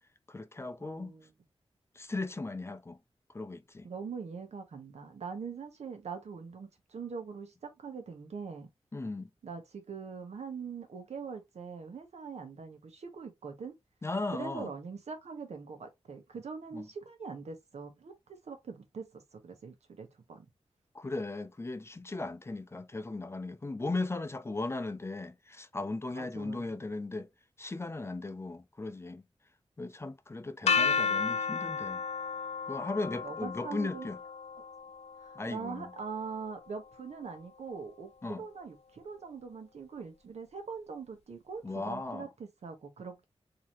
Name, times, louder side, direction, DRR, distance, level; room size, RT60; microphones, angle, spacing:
voice 1, 0.3-1.1 2.0-3.0 3.3-3.9 8.9-9.3 14.0-14.7 16.7-16.9 20.9-27.3 27.6-29.2 29.8-32.0 32.7-34.2 35.4-35.9 38.2-38.4 41.6-42.3, left 2 dB, 25° left, 0.5 m, -37 dB
voice 2, 0.8-1.3 3.8-8.7 9.4-13.7 14.3-20.5 26.1-26.6 33.1-34.1 35.2-43.2, right 5 dB, 90° right, 1.1 m, -43 dB
sound 1, 30.7-36.6, left 5 dB, 80° left, 0.6 m, -33 dB
3.9 x 2.8 x 3.0 m
wide cardioid pair, 120°, 11 cm